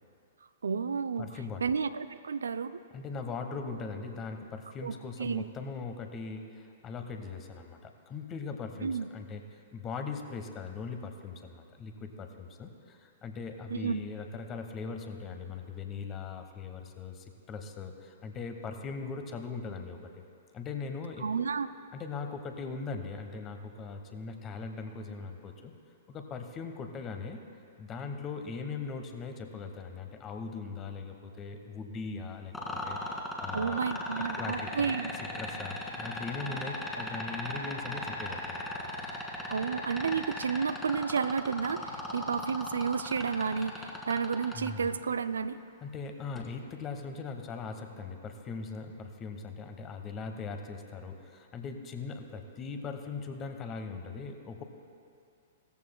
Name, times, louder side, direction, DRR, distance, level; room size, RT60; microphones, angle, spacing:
voice 1, 0.6-2.8 4.8-5.5 8.8-9.1 13.7-14.0 21.2-21.7 33.5-35.1 39.5-45.6, right 6 dB, 75° right, 13 dB, 0.4 m, -31 dB
voice 2, 1.2-1.6 2.9-20.2 20.5-21.5 21.9-25.7 26.1-27.4 27.8-33.8 34.2-34.9 35.4-39.0 44.5-44.9 45.8-54.6, left 4 dB, 25° left, 6 dB, 1.1 m, -40 dB
sound 1, 32.5-44.7 46.3-46.5, left 1 dB, 10° left, 1.7 m, -37 dB
17.0 x 14.0 x 2.2 m, 2.5 s
figure-of-eight pair, 110°, 0 cm